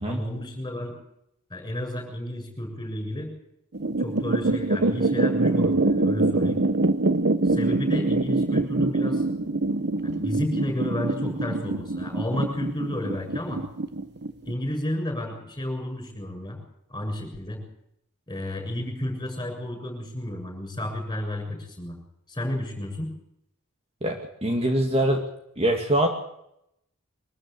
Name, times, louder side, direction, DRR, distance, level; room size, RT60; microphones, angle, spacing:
voice 1, 0.1-1.0 1.5-3.3 4.0-6.6 7.5-9.2 10.0-13.6 14.4-16.6 16.9-17.6 18.3-22.0 22.3-23.1, left 1 dB, 20° left, 4 dB, 7.1 m, -31 dB
sound 1, 3.7-14.5, right 2 dB, 50° right, 1.1 m, -24 dB
voice 2, 24.0-25.2 25.6-26.1, right 1 dB, 30° right, 3 dB, 2.0 m, -23 dB
24.0 x 13.0 x 8.6 m, 0.78 s
head